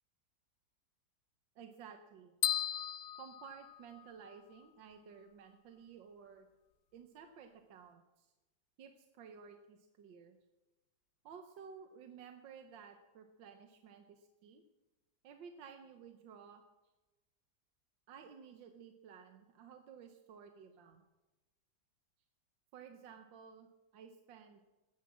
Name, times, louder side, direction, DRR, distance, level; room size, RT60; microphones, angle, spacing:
voice 1, 1.6-2.3 3.2-6.5 6.9-8.3 8.8-10.4 11.3-14.6 15.2-16.6 18.1-21.0 22.7-23.7 23.9-24.6, right 6 dB, 80° right, 6 dB, 1.7 m, -54 dB
sound 1, 2.4-4.3, left 12 dB, 90° left, 1.4 m, -36 dB
14.5 x 11.0 x 7.4 m, 1.1 s
omnidirectional pair, 2.0 m